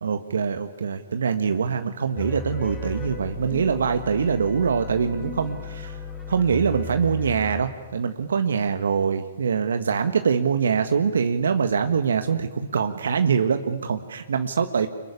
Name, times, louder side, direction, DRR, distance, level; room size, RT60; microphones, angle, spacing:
voice 1, 0.0-6.0 6.3-14.9, right 6 dB, 75° right, 8 dB, 1.5 m, -24 dB
sound 1, 2.2-7.6, left 3 dB, 10° left, 4.9 m, -36 dB
26.0 x 22.0 x 9.9 m, 1.2 s
hypercardioid pair, 130°, 0 cm